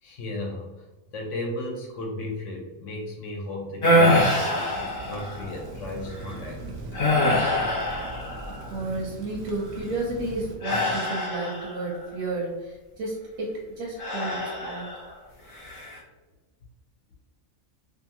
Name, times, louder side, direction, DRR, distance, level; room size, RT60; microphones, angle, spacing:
voice 1, 0.0-6.6, left 2 dB, 65° left, 0 dB, 0.9 m, -35 dB
sound 1, 3.8-5.5 6.1-6.3 6.9-8.8 10.6-12.0 14.0-15.1 15.5-16.0, left 1 dB, 40° left, 0.9 m, -24 dB
Rain, 4.7-10.6, right 2 dB, 65° right, 0.6 m, -40 dB
voice 2, 8.5-14.9, right 2 dB, 90° right, -4 dB, 1.1 m, -32 dB
2.6 x 2.4 x 2.8 m, 1.2 s
omnidirectional pair, 1.5 m